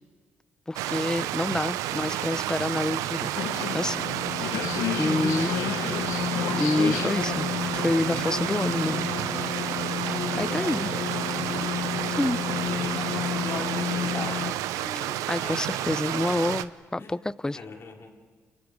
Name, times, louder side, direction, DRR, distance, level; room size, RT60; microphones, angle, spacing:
voice 1, 0.7-3.3 3.7-4.0 4.4-4.6 5.0-5.5 6.6-9.1 9.4-9.7 10.3-10.9 12.0-12.4 15.3-17.2 17.4-17.6, left 2 dB, 10° left, 19 dB, 0.6 m, -28 dB
Stream, 0.8-16.7, right 14 dB, 85° right, 0.6 m, -30 dB
voice 2, 1.9-2.4 5.4-6.1 10.5-11.0 12.3-14.7 15.4-16.2 17.0-17.2 17.5-18.2, left 4 dB, 50° left, 2 dB, 3.9 m, -41 dB
sound 1, 3.3-14.5, left 8 dB, 80° left, 1.1 m, -31 dB
Breathing, 9.9-12.3 12.6-13.4 13.8-14.4 14.7-15.3 15.9-16.4, left 2 dB, 30° left, 2.7 m, -46 dB
29.5 x 24.5 x 5.1 m, 1.5 s
supercardioid pair, 65°, 5 cm